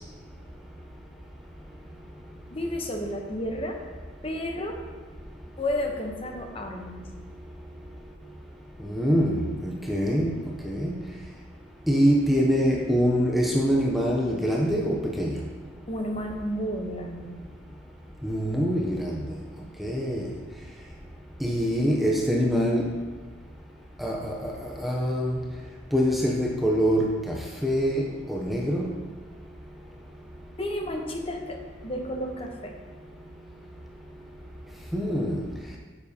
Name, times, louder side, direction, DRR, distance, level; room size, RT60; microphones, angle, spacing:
voice 1, 2.5-3.8 4.2-4.8 5.6-7.1 15.9-17.4 30.6-32.7, left 1 dB, 30° left, 2 dB, 0.8 m, -32 dB
voice 2, 8.9-10.3 10.6-11.0 11.9-15.4 18.2-19.2 19.8-20.3 21.4-22.9 24.0-24.5 24.8-25.4 25.9-27.4 27.6-29.0 34.9-35.4, equal, ahead, -2 dB, 0.6 m, -24 dB
9.3 x 7.1 x 2.8 m, 1.4 s
head